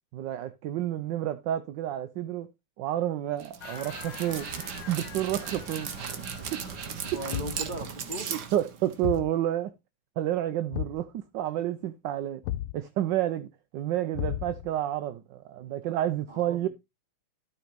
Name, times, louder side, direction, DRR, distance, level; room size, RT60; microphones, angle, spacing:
voice 1, 0.1-2.5 2.8-5.9 6.5-6.7 8.3-9.7 10.2-12.4 12.7-13.5 13.7-16.7, right 12 dB, 70° right, 1.2 m, -30 dB
Dog, 3.4-9.2, right 7 dB, 55° right, 1.7 m, -37 dB
sound 1, 3.6-8.0, left 7 dB, 60° left, 1.7 m, -47 dB
voice 2, 7.1-8.3 16.3-16.7, right 2 dB, 20° right, 2.6 m, -37 dB
Thump thud, 7.3-7.8 9.0-9.4 10.7-11.1 12.4-12.8 14.1-14.7, left 14 dB, 90° left, 1.6 m, -33 dB
12.5 x 4.1 x 5.1 m
omnidirectional pair, 2.3 m